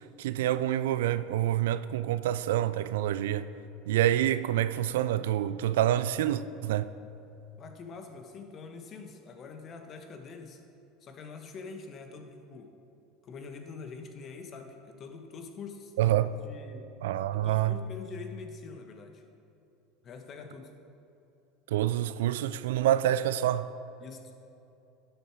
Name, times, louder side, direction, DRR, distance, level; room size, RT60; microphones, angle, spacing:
voice 1, 0.2-3.5 3.9-6.9 16.0-16.3 17.0-17.8 21.7-23.7, right 12 dB, 75° right, 0.3 m, -27 dB
voice 2, 7.6-10.6 11.0-12.7 13.2-15.9 16.2-16.9 17.3-19.2 20.0-20.7 24.0-24.3, left 4 dB, 40° left, 1.3 m, -45 dB
11.5 x 7.1 x 4.6 m
hypercardioid pair, 80°, 0 cm